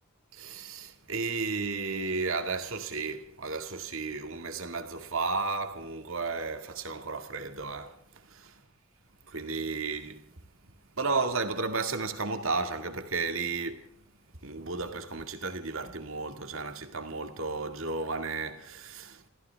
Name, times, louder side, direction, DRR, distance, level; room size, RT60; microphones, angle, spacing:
voice 1, 0.3-8.6 9.3-10.2 11.0-13.9 14.4-19.3, right 4 dB, 65° right, 2.1 m, -33 dB
27.5 x 15.0 x 3.5 m
head